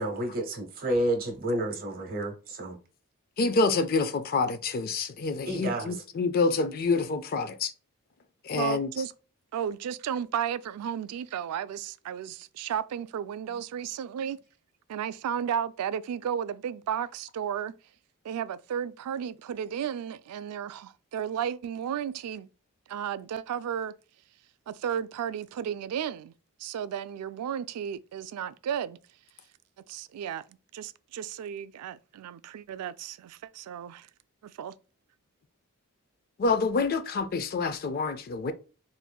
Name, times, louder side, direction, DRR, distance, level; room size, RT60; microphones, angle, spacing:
voice 1, 0.0-2.8 5.5-6.0, right 1 dB, 40° right, 1.0 m, -30 dB
voice 2, 3.4-7.7 8.5-8.9 36.4-38.5, left 3 dB, 45° left, 0.4 m, -27 dB
voice 3, 8.5-9.1 9.5-14.4 14.9-17.7 18.2-22.5 22.9-24.0 24.7-26.3 26.6-29.0 29.9-34.1 34.4-34.8, right 8 dB, 90° right, 0.3 m, -33 dB
4.3 x 2.6 x 2.2 m
head